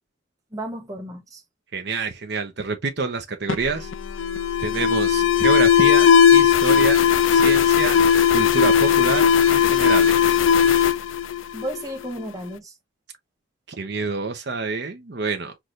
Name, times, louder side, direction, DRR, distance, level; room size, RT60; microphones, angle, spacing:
voice 1, 0.5-1.4 11.5-12.8, right 1 dB, 15° right, 1.4 m, -33 dB
voice 2, 1.7-3.9 4.6-7.0 7.3-8.0 8.3-10.3 13.7-15.6, right 4 dB, 60° right, 0.8 m, -27 dB
Alarm, 3.5-12.1, left 8 dB, 80° left, 0.5 m, -17 dB
6.0 x 2.5 x 3.1 m
head